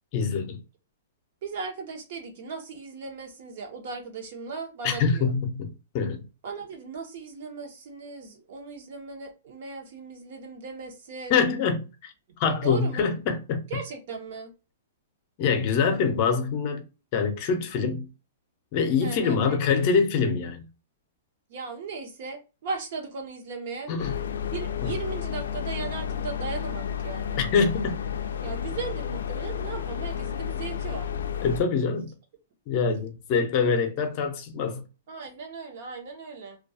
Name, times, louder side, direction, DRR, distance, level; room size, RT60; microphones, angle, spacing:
voice 1, 0.1-0.6 4.8-5.7 5.9-6.2 11.3-12.1 12.4-13.6 15.4-16.8 17.1-18.1 18.7-20.6 23.9-24.1 24.8-24.9 27.4-27.9 31.4-32.1 32.7-34.8, left 5 dB, 40° left, 0.6 m, -24 dB
voice 2, 1.4-5.3 6.4-11.4 12.3-12.4 12.6-13.1 13.7-14.5 19.0-19.6 21.5-23.9 24.5-27.4 28.4-31.1 35.1-36.6, right 4 dB, 55° right, 0.7 m, -37 dB
sound 1, 24.0-31.6, left 8 dB, 90° left, 0.3 m, -32 dB
2.3 x 2.3 x 2.6 m
hypercardioid pair, 155°, 0 cm